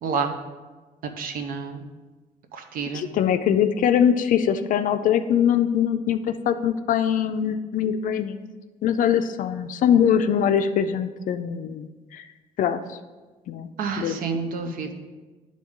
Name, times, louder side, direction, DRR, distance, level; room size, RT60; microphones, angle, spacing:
voice 1, 0.0-0.4 1.2-1.8 2.5-3.1 13.8-14.9, right 5 dB, 80° right, 5 dB, 0.7 m, -29 dB
voice 2, 2.9-8.4 8.8-12.2 12.6-13.0 13.5-13.7 14.0-14.8, left 8 dB, 65° left, 9 dB, 0.4 m, -23 dB
10.5 x 3.8 x 3.6 m, 1.3 s
cardioid pair, 125°, 14 cm